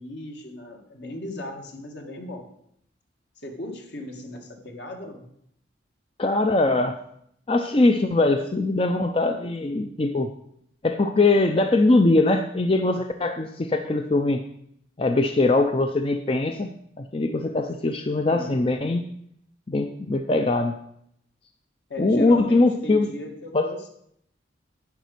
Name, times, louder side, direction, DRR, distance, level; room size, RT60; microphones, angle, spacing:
voice 1, 0.0-2.5 3.4-5.2 18.3-18.6 21.9-23.9, left 1 dB, 65° left, 2 dB, 1.9 m, -37 dB
voice 2, 6.2-7.0 7.5-10.3 10.8-14.4 15.0-16.7 17.0-19.0 19.7-20.7 22.0-23.1 23.5-23.7, left 2 dB, 30° left, 6 dB, 0.5 m, -21 dB
10.5 x 5.1 x 8.3 m, 0.73 s
head